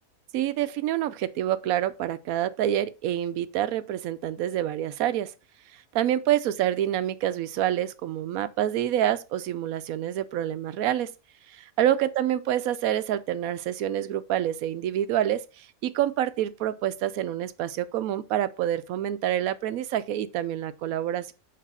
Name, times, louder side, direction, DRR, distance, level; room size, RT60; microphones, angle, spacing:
voice 1, 0.3-5.3 5.9-11.1 11.5-21.3, right 11 dB, 75° right, 1.0 m, -27 dB
6.6 x 3.0 x 5.4 m
omnidirectional pair, 1.6 m